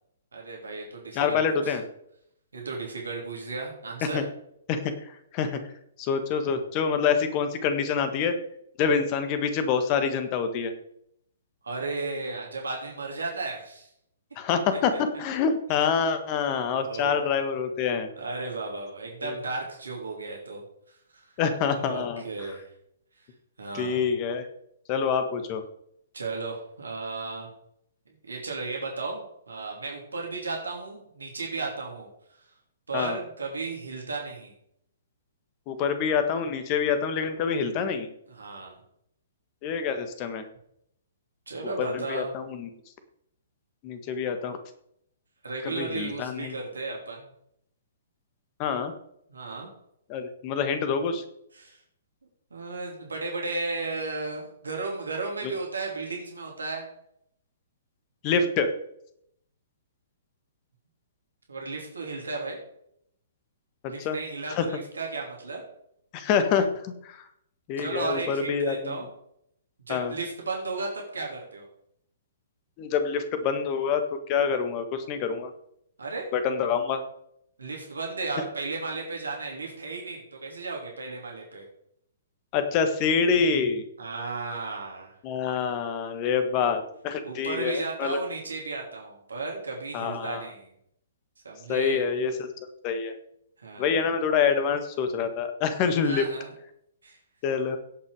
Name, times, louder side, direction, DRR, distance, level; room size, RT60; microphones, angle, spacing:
voice 1, 0.3-1.7 2.5-4.2 11.6-13.9 16.7-17.4 18.2-21.0 21.7-22.6 23.6-24.1 26.1-27.5 28.1-32.1 32.3-32.5 32.9-34.5 38.3-38.8 41.5-42.3 45.4-47.3 49.3-49.7 51.5-51.8 52.5-56.8 61.5-62.6 63.9-65.6 67.8-69.1 69.9-71.7 76.0-76.3 77.6-81.6 84.0-85.1 87.2-90.7 91.4-92.0 93.6-94.0 96.0-96.5 97.0-97.2, right 3 dB, 75° right, -1 dB, 3.1 m, -34 dB
voice 2, 1.1-1.8 4.1-4.2 4.7-5.6 6.0-8.4 8.8-10.7 14.3-18.1 19.2-19.4 21.4-22.5 23.7-24.5 24.9-25.6 32.9-33.2 35.7-38.1 39.6-40.4 41.8-42.7 43.8-44.6 45.6-46.5 48.6-48.9 50.1-51.2 55.4-55.5 58.2-58.7 63.8-64.2 64.5-64.7 66.1-67.2 67.7-69.0 69.9-70.1 72.8-75.5 76.3-77.0 82.5-83.8 85.2-88.2 89.9-90.4 91.7-92.5 92.8-93.1 93.8-96.2 97.4-97.8, left 6 dB, 35° left, 9 dB, 1.6 m, -26 dB
17.0 x 5.8 x 4.9 m, 0.73 s
figure-of-eight pair, 120°, 0 cm